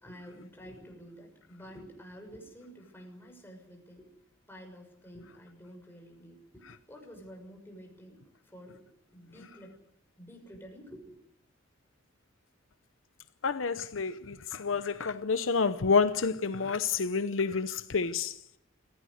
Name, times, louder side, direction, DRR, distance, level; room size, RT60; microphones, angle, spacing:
voice 1, 0.0-4.1 4.5-9.8 10.2-11.1, equal, 10° left, 6.5 m, -50 dB
voice 2, 13.4-18.4, left 5 dB, 75° left, 0.8 m, -29 dB
27.0 x 16.5 x 6.5 m
head